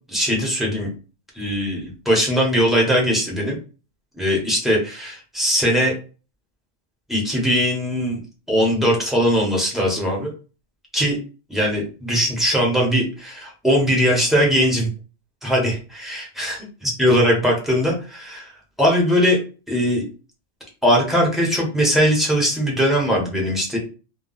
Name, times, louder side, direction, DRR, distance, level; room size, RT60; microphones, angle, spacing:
voice 1, 0.1-0.9 1.3-3.6 4.1-5.9 7.1-8.2 8.5-10.3 10.9-11.2 11.5-14.9 15.4-18.5 18.8-19.4 19.7-20.0 20.8-23.8, equal, ahead, -3 dB, 0.8 m, -20 dB
2.3 x 2.2 x 3.8 m, 0.35 s
omnidirectional pair, 1.2 m